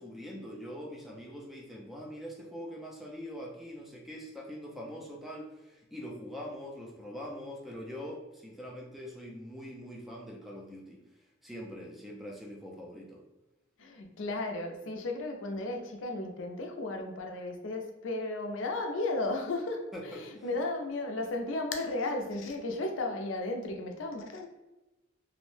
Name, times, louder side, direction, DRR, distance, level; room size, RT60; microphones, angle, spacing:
voice 1, 0.0-11.0 11.4-13.2 19.9-20.5, equal, ahead, -2 dB, 0.4 m, -43 dB
voice 2, 13.8-24.5, left 2 dB, 85° left, 3 dB, 0.5 m, -34 dB
2.6 x 2.0 x 3.2 m, 1.0 s
head